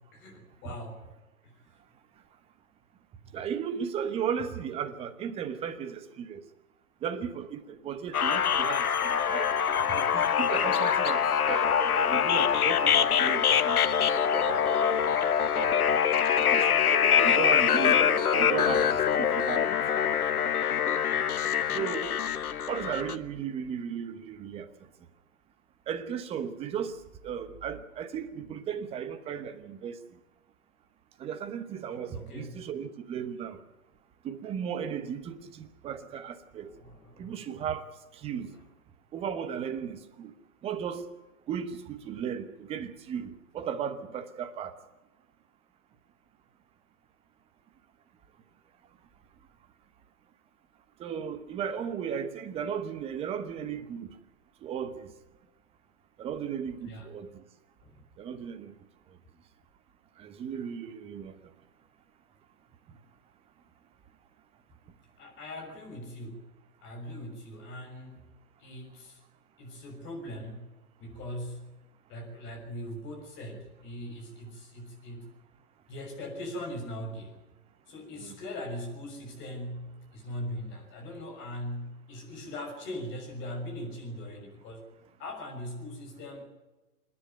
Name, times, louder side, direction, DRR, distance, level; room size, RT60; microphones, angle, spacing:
voice 1, 0.1-1.0 1.4-1.6 32.1-32.6 36.6-37.4 39.5-39.6 56.8-57.1 57.8-58.0 65.2-66.4 66.8-68.2 68.6-69.2 69.6-70.7 71.0-71.7 72.1-75.3 75.9-77.5 77.9-84.8 85.2-86.5, left 1 dB, 25° left, 6.4 m, -40 dB
voice 2, 3.3-6.4 7.0-9.5 9.9-13.8 14.3-15.0 15.5-15.9 16.4-19.8 21.7-22.1 22.7-24.7 25.9-27.0 27.2-30.0 31.2-33.6 34.2-36.7 37.2-37.8 38.1-38.5 39.1-40.3 40.6-41.0 41.5-44.7 51.0-54.1 54.6-55.1 56.2-57.4 58.2-58.7 60.2-61.3 78.2-78.4, right 8 dB, 15° right, 1.0 m, -35 dB
sound 1, 8.1-23.2, left 8 dB, 70° left, 1.3 m, -24 dB
27.0 x 10.5 x 9.3 m
hypercardioid pair, 135°, 46 cm